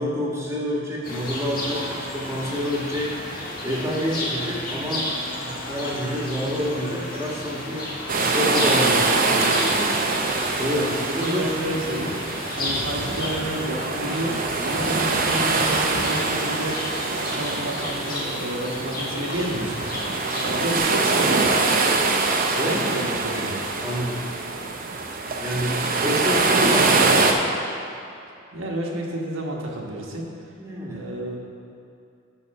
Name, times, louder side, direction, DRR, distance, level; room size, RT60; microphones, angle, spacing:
voice 1, 0.0-3.2 3.6-5.1 5.4-7.8 8.2-11.4 22.5-22.8 23.8-24.2 25.4-27.5 30.6-31.0, equal, 15° right, -4 dB, 1.4 m, -28 dB
sound 1, 1.0-20.8, left 1 dB, 45° left, 1.6 m, -32 dB
sound 2, 8.1-27.3, right 3 dB, 45° right, 0.7 m, -24 dB
voice 2, 10.7-21.5 22.5-23.6 28.5-30.3 30.9-31.4, right 1 dB, 75° right, -1 dB, 1.3 m, -30 dB
12.5 x 4.2 x 5.3 m, 2.6 s
head